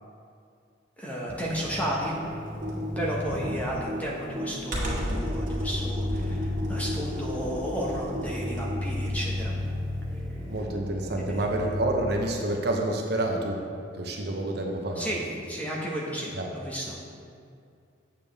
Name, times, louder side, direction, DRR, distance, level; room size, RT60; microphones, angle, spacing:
voice 1, 1.0-2.1 3.0-9.5 11.3-11.4 15.0-15.2 15.5-17.0, equal, 10° left, -4 dB, 1.1 m, -33 dB
sound 1, 1.3-11.9, left 1 dB, 15° right, 0.8 m, -34 dB
Computer keyboard, 2.5-9.3, equal, 40° right, 1.8 m, -33 dB
voice 2, 10.5-13.6 13.9-15.1 16.3-16.5, right 1 dB, 55° right, 1 dB, 0.8 m, -28 dB
8.4 x 7.0 x 3.4 m, 2.4 s
head